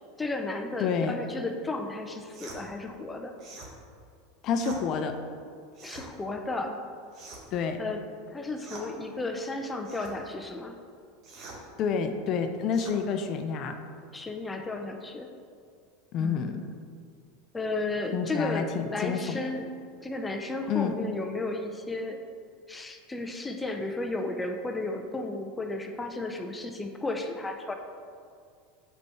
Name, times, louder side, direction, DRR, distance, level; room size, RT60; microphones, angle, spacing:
voice 1, 0.2-3.3 5.8-6.8 7.8-8.0 8.3-10.8 14.1-15.3 16.2-16.5 17.5-19.7 20.0-22.2 22.7-27.7, left 2 dB, 15° left, 4 dB, 0.6 m, -33 dB
voice 2, 0.8-1.2 4.4-5.2 7.5-7.8 11.8-13.8 16.1-16.6 18.1-19.4 20.7-21.0, left 6 dB, 50° left, 7 dB, 0.6 m, -29 dB
sound 1, 2.3-2.6 3.4-3.7 4.5-4.8 5.7-6.1 7.1-7.6 8.5-8.9 9.8-10.1 11.2-11.6 12.7-13.0, right 3 dB, 45° right, 1.4 m, -45 dB
5.2 x 4.5 x 5.5 m, 2.2 s
hypercardioid pair, 95°, 0 cm